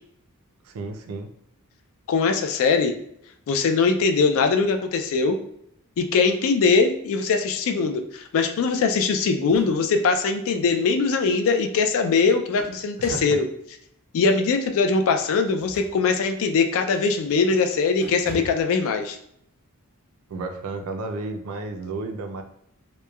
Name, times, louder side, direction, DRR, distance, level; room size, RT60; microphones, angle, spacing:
voice 1, 0.6-1.3 13.1-13.4 20.3-22.4, right 3 dB, 70° right, 5 dB, 0.4 m, -32 dB
voice 2, 2.1-2.9 3.5-5.4 6.0-13.4 14.1-19.2, left 4 dB, 65° left, 6 dB, 0.3 m, -21 dB
sound 1, 9.3-10.1 10.5-10.6 12.1-13.4 15.5-16.4 16.9-17.1 17.4-17.6 18.0-18.7, right 1 dB, 5° right, 0.6 m, -42 dB
2.9 x 2.1 x 2.2 m, 0.72 s
head